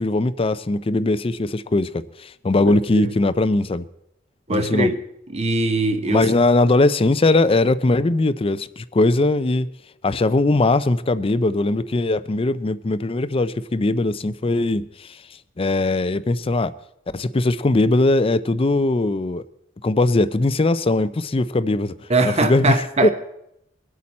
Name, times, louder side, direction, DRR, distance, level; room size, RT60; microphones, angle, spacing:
voice 1, 0.0-3.9 4.5-4.9 6.1-9.7 10.0-15.1 15.6-16.7 17.1-19.4 19.8-21.9 22.2-22.8 23.0-23.1, left 2 dB, 30° left, 0.5 m, -20 dB
voice 2, 2.6-3.1 4.5-5.0 5.3-6.3 22.1-23.1, right 2 dB, 35° right, 1.0 m, -22 dB
23.0 x 8.5 x 4.3 m
head